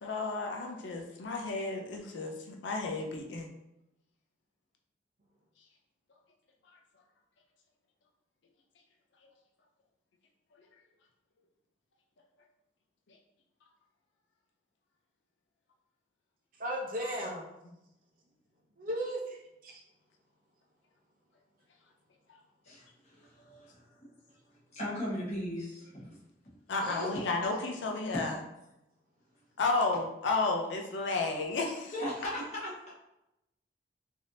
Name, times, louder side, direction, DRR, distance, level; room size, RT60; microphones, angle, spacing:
voice 1, 0.0-3.5 26.7-28.4 29.6-31.9, left 3 dB, 80° left, 1 dB, 0.5 m, -32 dB
voice 2, 16.6-17.5 18.8-19.8 26.8-27.1, right 1 dB, 45° right, -1 dB, 0.6 m, -36 dB
voice 3, 22.6-23.9 24.7-26.2 31.9-32.9, equal, 35° left, -8 dB, 1.2 m, -38 dB
3.4 x 2.7 x 2.6 m, 0.88 s
head